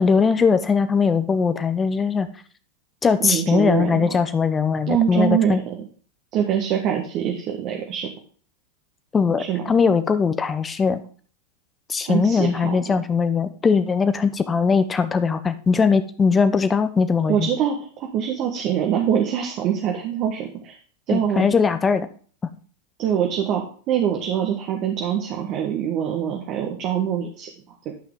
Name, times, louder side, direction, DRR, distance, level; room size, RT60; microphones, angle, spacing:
voice 1, 0.0-2.3 3.0-5.6 9.1-11.0 11.9-17.5 21.1-22.1, left 5 dB, 20° left, 12 dB, 1.0 m, -20 dB
voice 2, 3.2-4.1 4.9-5.7 6.3-8.1 9.4-9.6 12.0-12.7 17.3-20.7 21.1-21.5 23.0-27.5 27.8-27.9, right 9 dB, 40° right, 1 dB, 1.6 m, -24 dB
12.0 x 5.8 x 3.9 m, 0.43 s
figure-of-eight pair, 90°, 0 cm